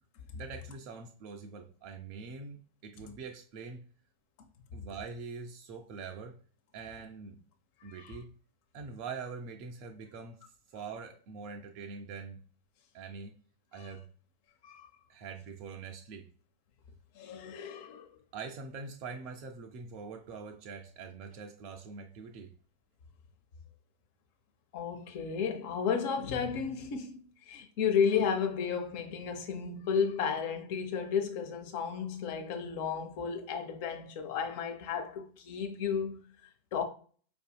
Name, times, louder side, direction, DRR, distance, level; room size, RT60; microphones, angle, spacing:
voice 1, 0.3-3.8 4.7-6.4 6.7-7.4 7.8-8.3 8.7-10.4 10.7-12.4 12.9-13.3 13.7-14.1 15.1-16.3 18.3-22.5, right 5 dB, 45° right, 0.4 m, -44 dB
voice 2, 17.1-18.1 24.7-36.8, left 6 dB, 45° left, 0.6 m, -33 dB
4.7 x 2.6 x 2.3 m
figure-of-eight pair, 90°, 0 cm